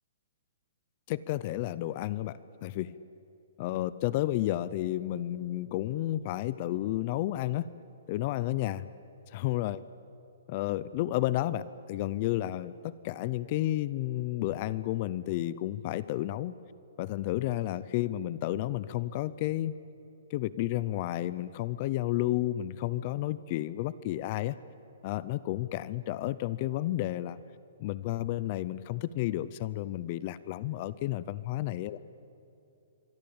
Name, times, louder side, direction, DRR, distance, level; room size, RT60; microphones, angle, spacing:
voice 1, 1.1-3.0 3.6-7.7 8.1-8.9 9.3-9.8 10.5-16.5 17.0-19.7 20.3-24.6 25.0-27.4 27.8-32.0, left 15 dB, 30° left, 17 dB, 0.5 m, -31 dB
26.0 x 24.0 x 8.7 m, 2.8 s
hypercardioid pair, 170°, 0 cm